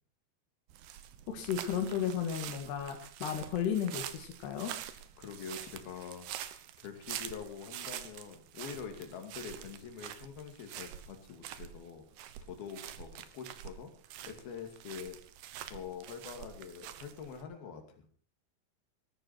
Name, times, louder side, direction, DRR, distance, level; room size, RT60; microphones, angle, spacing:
sound 1, 0.7-17.4, right 11 dB, 85° right, 3.2 m, -46 dB
voice 1, 1.3-4.7, left 8 dB, 85° left, 4 dB, 4.0 m, -34 dB
voice 2, 5.2-6.3 6.8-12.0 12.4-13.9 14.2-15.2 15.7-18.1, left 6 dB, 70° left, 4 dB, 4.3 m, -45 dB
19.0 x 14.5 x 4.4 m, 0.43 s
omnidirectional pair, 4.6 m